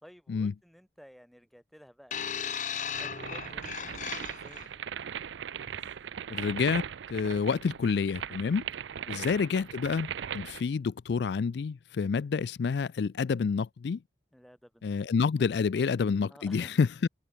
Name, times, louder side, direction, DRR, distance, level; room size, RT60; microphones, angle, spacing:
voice 1, 0.0-4.8 9.0-9.4 14.3-15.0 16.3-16.8, equal, ahead, 4.3 m, -55 dB
sound 1, 2.1-4.7 5.6-5.7, left 8 dB, 45° left, 1.1 m, -36 dB
sound 2, 2.9-10.6, right 8 dB, 85° right, 0.5 m, -39 dB
voice 2, 6.3-8.6 9.1-14.0 14.8-17.1, left 5 dB, 70° left, 0.4 m, -28 dB
head